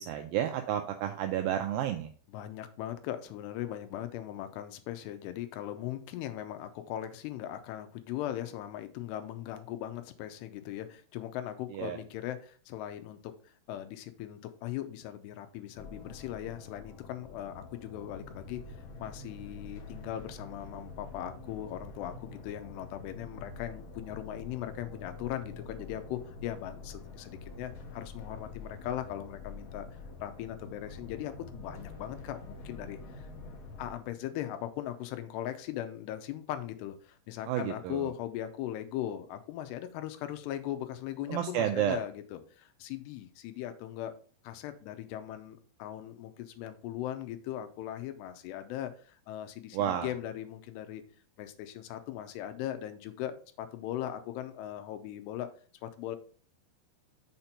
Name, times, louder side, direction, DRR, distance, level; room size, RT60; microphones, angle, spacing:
voice 1, 0.0-2.1 11.7-12.0 37.5-38.1 41.3-42.0 49.7-50.1, right 11 dB, 90° right, 6 dB, 2.0 m, -31 dB
voice 2, 2.3-13.3 13.7-18.6 19.0-29.9 30.2-33.0 33.8-44.1 44.4-51.0 51.4-55.5 55.8-56.2, left 12 dB, 85° left, 8 dB, 2.8 m, -39 dB
sound 1, 15.8-33.9, left 3 dB, 65° left, 1.8 m, -46 dB
6.6 x 4.4 x 5.4 m, 0.43 s
omnidirectional pair, 4.9 m